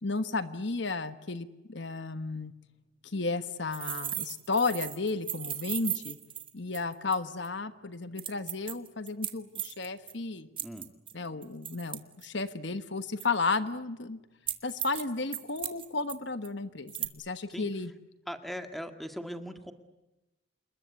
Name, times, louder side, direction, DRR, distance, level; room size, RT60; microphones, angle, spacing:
voice 1, 0.0-2.5 3.0-6.2 6.5-10.5 11.1-14.2 14.6-17.9, left 3 dB, 60° left, 11 dB, 1.3 m, -33 dB
sound 1, 3.7-7.1 7.4-7.5 8.2-10.1 10.6-12.5 13.2-13.6 14.5-15.0 15.3-16.1 16.4-16.5 16.9-17.1, right 10 dB, 25° right, 1.7 m, -36 dB
voice 2, 18.3-19.7, equal, ahead, 7 dB, 1.8 m, -39 dB
28.0 x 22.0 x 8.4 m, 1.0 s
head